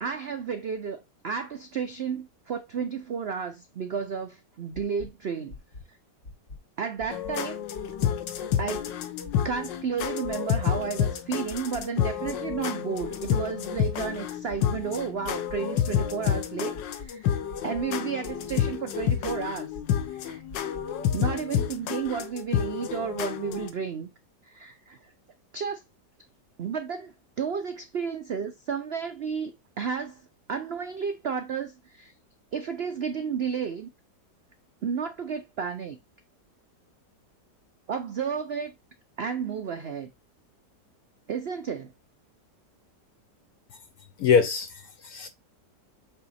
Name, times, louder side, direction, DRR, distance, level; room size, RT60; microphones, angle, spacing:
voice 1, 0.0-5.5 6.8-7.7 8.6-9.0 9.4-19.7 20.1-20.4 21.1-24.1 24.4-25.1 25.5-25.8 26.6-30.2 30.5-32.1 32.5-33.9 34.8-36.0 37.9-38.7 39.2-40.1 41.3-41.9, right 6 dB, 75° right, 0.5 m, -32 dB
sound 1, 4.7-5.1 5.5-5.8 6.2-6.6 7.0-7.3 7.7-8.1 8.5-8.8 9.2-9.6 10.0-10.3 10.7-11.1 11.5-11.8 12.2-12.6 13.0-13.3 13.7-14.1 14.5-14.8 15.2-15.6 16.0-16.3 16.7-17.1 17.5-17.8 18.2-18.6 19.0-19.3 19.7-20.1 20.5-20.8, left 3 dB, 40° left, 2.0 m, -43 dB
sound 2, 7.1-23.7, left 9 dB, 90° left, 1.5 m, -29 dB
voice 2, 44.2-45.3, left 6 dB, 65° left, 1.1 m, -23 dB
7.6 x 3.0 x 4.1 m
omnidirectional pair, 1.9 m